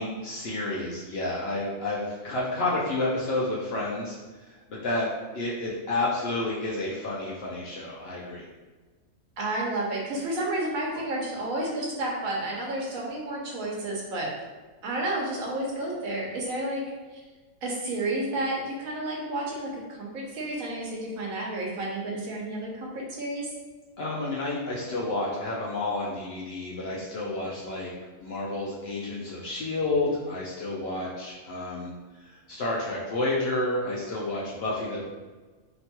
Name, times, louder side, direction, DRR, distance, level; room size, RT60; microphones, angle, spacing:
voice 1, 0.0-4.2 4.4-5.1 5.3-8.5 24.0-27.9 28.2-31.9 32.3-35.0, left 2 dB, 65° left, -5 dB, 0.6 m, -30 dB
voice 2, 9.4-14.3 14.8-16.8 17.1-17.2 17.6-23.5, right 1 dB, 80° right, -2 dB, 1.1 m, -31 dB
3.0 x 2.2 x 2.8 m, 1.3 s
omnidirectional pair, 1.4 m